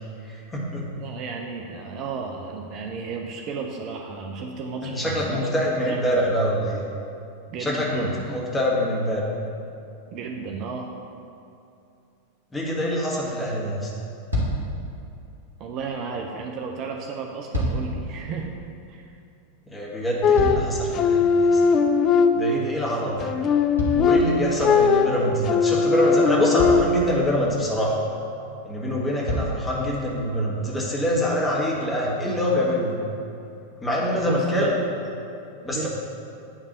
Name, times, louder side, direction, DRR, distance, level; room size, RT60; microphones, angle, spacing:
voice 1, 0.3-0.9 4.8-6.8 7.6-9.3 12.5-13.9 19.7-21.6 22.3-23.3 23.9-27.9 28.6-33.0 33.8-34.7 35.6-35.9, equal, 10° left, -4 dB, 1.7 m, -25 dB
voice 2, 1.0-6.0 7.5-8.3 10.1-10.9 15.6-18.5 18.9-19.0 34.1-34.8 35.7-35.9, right 5 dB, 40° right, 2 dB, 0.6 m, -33 dB
sound 1, 11.8-12.0 13.4-13.5 13.9-14.0 14.3-14.8 17.2-18.0 19.9-21.0 23.7-24.7 25.9-26.0 26.5-27.0 28.4-28.5 29.2-29.7 30.5-30.6, equal, 80° right, 1.8 m, -28 dB
sound 2, 20.2-22.8 23.2-27.1, left 5 dB, 30° left, 0.4 m, -20 dB
9.5 x 3.3 x 6.7 m, 2.6 s
figure-of-eight pair, 90°, 0 cm